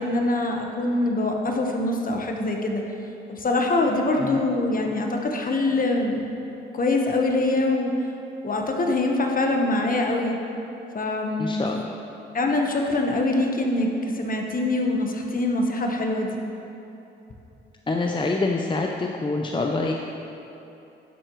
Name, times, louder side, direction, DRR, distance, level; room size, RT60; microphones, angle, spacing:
voice 1, 0.0-2.8 3.3-6.2 6.7-7.9 8.4-10.4 10.9-11.7 12.3-16.4, left 2 dB, 45° left, 2 dB, 1.2 m, -24 dB
voice 2, 11.4-11.9 17.9-19.9, left 3 dB, 25° left, 1 dB, 0.6 m, -26 dB
11.0 x 7.5 x 3.2 m, 2.9 s
supercardioid pair, 60°, 21 cm